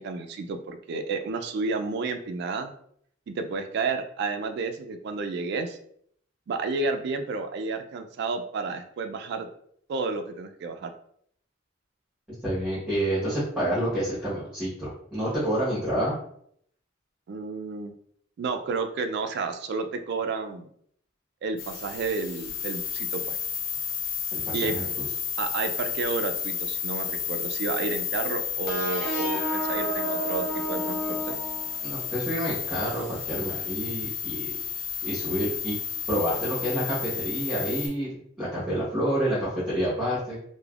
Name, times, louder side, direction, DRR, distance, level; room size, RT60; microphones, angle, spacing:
voice 1, 0.0-2.7 3.3-5.8 6.5-9.5 9.9-10.9 17.3-17.9 18.4-20.7 21.4-23.4 24.5-24.8 25.4-31.4, right 4 dB, 60° right, 7 dB, 0.3 m, -31 dB
voice 2, 12.4-16.2 24.3-25.1 31.8-34.5 35.0-35.7 36.1-38.1 38.4-40.3, equal, 5° right, -10 dB, 1.0 m, -28 dB
sound 1, 21.6-37.9, left 7 dB, 70° left, 1.0 m, -32 dB
sound 2, 28.7-32.2, equal, 50° left, 0.7 m, -31 dB
3.2 x 2.1 x 2.3 m, 0.66 s
head